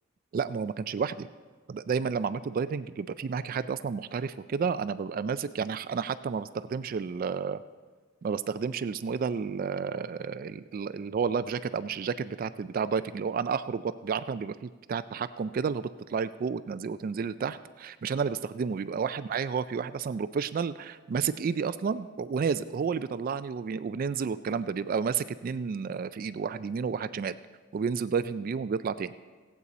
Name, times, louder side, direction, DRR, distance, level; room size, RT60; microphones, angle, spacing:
voice 1, 0.3-1.3 1.7-7.6 8.2-27.4 27.7-29.2, right 6 dB, 45° right, 13 dB, 0.3 m, -31 dB
17.5 x 8.2 x 4.1 m, 1.4 s
head